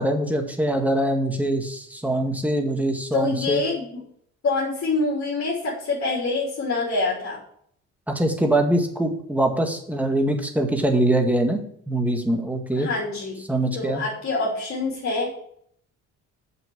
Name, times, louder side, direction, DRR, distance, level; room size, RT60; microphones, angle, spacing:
voice 1, 0.0-3.6 8.1-12.9 13.5-14.0, right 1 dB, 5° right, 3 dB, 1.9 m, -23 dB
voice 2, 3.1-4.0 4.4-7.4 12.8-13.4 13.7-15.3, left 3 dB, 50° left, -3 dB, 3.3 m, -26 dB
7.2 x 6.4 x 6.9 m, 0.65 s
cardioid pair, 90°, 30 cm